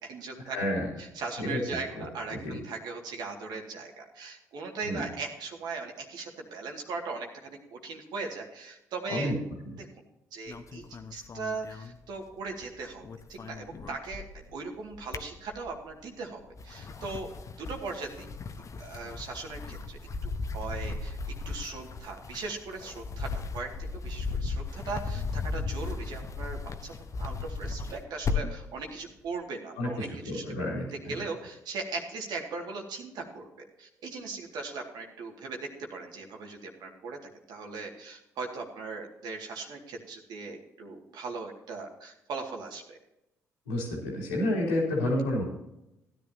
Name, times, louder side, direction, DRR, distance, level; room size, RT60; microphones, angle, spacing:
voice 1, 0.0-0.6 1.0-9.3 9.8-9.9 10.3-10.8 11.1-13.0 13.3-14.2 14.5-17.3 17.6-18.3 18.7-21.2 21.5-26.9 27.2-30.4 30.9-33.5 33.8-37.2 37.5-43.0, right 4 dB, 65° right, 1 dB, 2.2 m, -39 dB
voice 2, 0.5-0.9 1.4-2.0 2.3-2.6 4.8-5.1 9.1-9.3 9.6-9.7 29.8-31.1 43.7-45.4, left 1 dB, 90° left, -1 dB, 3.1 m, -30 dB
sound 1, 10.5-12.6 12.9-14.5 14.9-15.9 16.4-28.7, left 4 dB, 45° left, 1.1 m, -36 dB
16.0 x 10.5 x 2.8 m, 0.87 s
hypercardioid pair, 50°, 8 cm